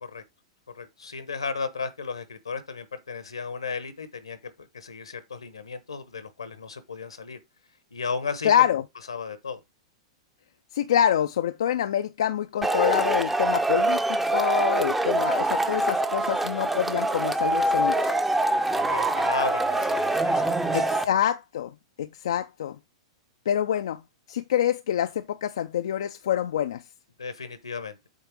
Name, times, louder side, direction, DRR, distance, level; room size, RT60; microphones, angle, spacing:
voice 1, 0.7-7.4 7.9-8.7 9.1-9.6 18.5-20.9 27.2-28.0, left 5 dB, 85° left, 1.1 m, -35 dB
voice 2, 8.4-8.8 10.7-18.1 20.7-21.7 22.0-22.8 23.5-24.0 24.3-26.8, left 10 dB, 70° left, 0.4 m, -26 dB
Male speech man speaking / Shout / Clapping, 12.6-21.0, right 2 dB, 10° right, 0.6 m, -24 dB
8.2 x 3.3 x 4.6 m
hypercardioid pair, 105°, 3 cm